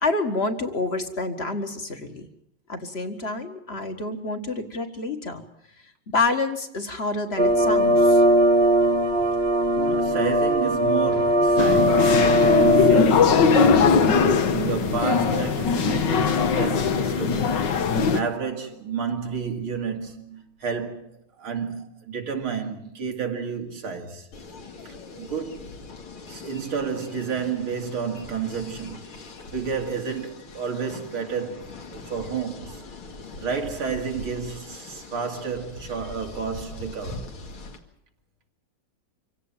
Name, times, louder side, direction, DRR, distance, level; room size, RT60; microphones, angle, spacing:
voice 1, 0.0-2.3 2.7-5.4 6.1-8.2, left 3 dB, 30° left, 1.9 m, -28 dB
sound 1, 7.4-13.0, equal, 40° right, 1.0 m, -19 dB
voice 2, 9.7-17.6 18.1-21.1 21.4-24.3 24.8-25.7 26.3-29.1 29.4-32.8 33.4-37.3, right 6 dB, 90° right, 3.3 m, -31 dB
sound 2, 11.6-18.2, left 5 dB, 60° left, 1.8 m, -20 dB
sound 3, 24.3-37.8, left 3 dB, 85° left, 3.0 m, -41 dB
26.0 x 17.0 x 7.4 m
omnidirectional pair, 2.2 m